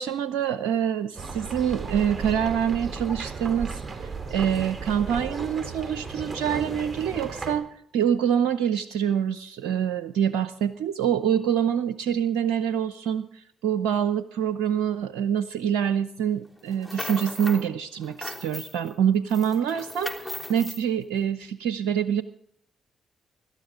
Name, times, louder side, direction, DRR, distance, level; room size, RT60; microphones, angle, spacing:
voice 1, 0.0-3.8 4.3-7.7 7.9-22.2, right 9 dB, 80° right, 13 dB, 0.6 m, -25 dB
sound 1, 1.1-7.5, right 4 dB, 35° right, 3.5 m, -35 dB
sound 2, 16.7-17.7 18.0-18.9 19.3-20.8, left 1 dB, 5° left, 3.3 m, -37 dB
25.0 x 12.5 x 3.8 m, 0.68 s
hypercardioid pair, 45°, 0 cm